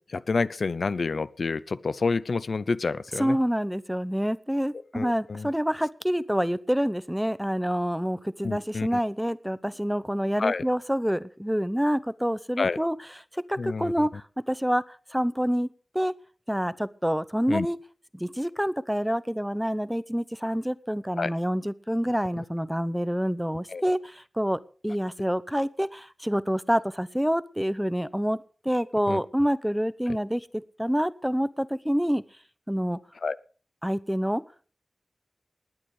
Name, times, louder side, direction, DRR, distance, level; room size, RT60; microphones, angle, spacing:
voice 1, 0.0-3.4 4.9-5.5 8.4-9.0 10.4-10.6 12.6-12.8 13.6-14.1 17.5-17.7 21.2-21.3 23.7-23.8 29.1-29.2 33.2-33.4, left 4 dB, 75° left, 16 dB, 0.6 m, -28 dB
voice 2, 3.2-13.0 13.3-15.7 15.9-16.1 16.5-17.8 18.1-28.4 28.6-32.2 32.7-33.0 33.8-34.4, equal, 5° right, 16 dB, 0.8 m, -27 dB
19.5 x 8.7 x 4.9 m, 0.41 s
cardioid pair, 50°, 0 cm